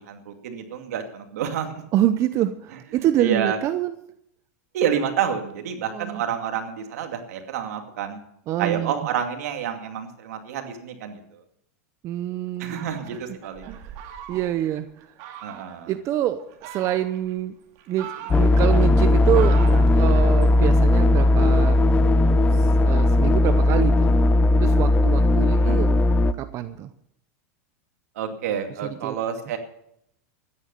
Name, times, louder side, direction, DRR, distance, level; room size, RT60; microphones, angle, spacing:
voice 1, 0.0-1.8 3.2-3.6 4.7-8.2 8.6-11.4 12.6-13.8 15.4-15.9 25.6-25.9 28.2-29.6, right 8 dB, 75° right, 5 dB, 2.4 m, -29 dB
voice 2, 1.9-3.9 5.9-6.2 8.5-8.9 12.0-12.9 13.3-13.4 13.7-14.0 14.3-15.1 15.9-17.5 17.9-21.8 22.5-24.1 24.6-26.0 26.3-26.9 28.8-29.1, right 12 dB, 35° right, 11 dB, 0.7 m, -26 dB
Fowl, 12.6-14.7 15.2-15.8 16.4-17.3 17.8-20.5, right 9 dB, 50° right, 2.3 m, -40 dB
sound 1, 18.3-26.3, left 2 dB, 15° left, 0.6 m, -17 dB
14.0 x 10.0 x 6.8 m, 0.73 s
supercardioid pair, 135°, 8 cm